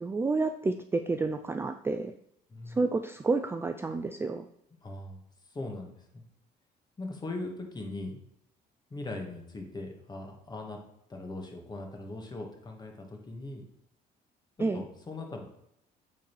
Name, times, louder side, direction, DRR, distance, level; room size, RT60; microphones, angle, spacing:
voice 1, 0.0-2.1 2.7-4.5 14.6-14.8, right 3 dB, 15° right, 8 dB, 0.3 m, -30 dB
voice 2, 4.8-5.2 5.5-6.2 7.0-8.2 8.9-10.8 11.1-13.6 14.6-15.5, left 2 dB, 25° left, 3 dB, 1.6 m, -40 dB
8.5 x 3.9 x 4.6 m, 0.74 s
cardioid pair, 110°, 17 cm